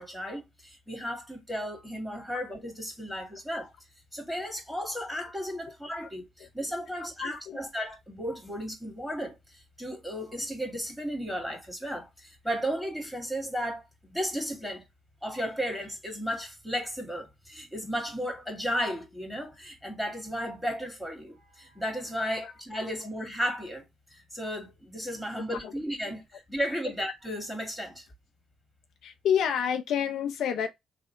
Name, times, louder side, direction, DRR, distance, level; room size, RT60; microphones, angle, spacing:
voice 1, 0.0-3.7 4.1-9.4 9.8-14.8 15.2-28.1, equal, ahead, 2.0 m, -34 dB
voice 2, 7.2-7.6 22.4-22.5 25.4-25.7 29.0-30.7, left 8 dB, 75° left, 0.7 m, -29 dB
3.3 x 2.7 x 4.3 m
cardioid pair, 90°, 0 cm